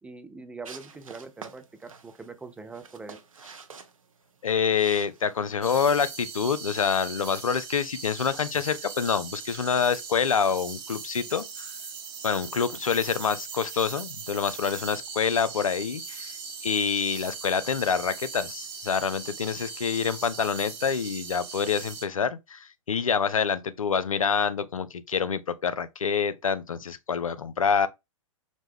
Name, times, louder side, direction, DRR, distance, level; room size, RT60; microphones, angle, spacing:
voice 1, 0.0-3.2, right 4 dB, 5° right, 0.4 m, -43 dB
sound 1, 0.6-5.7, right 5 dB, 80° right, 0.6 m, -47 dB
voice 2, 4.4-11.7 12.2-16.4 16.6-27.9, left 6 dB, 85° left, 0.5 m, -27 dB
sound 2, 5.6-22.1, right 5 dB, 45° right, 1.1 m, -40 dB
5.1 x 2.1 x 3.4 m
figure-of-eight pair, 110°, 17 cm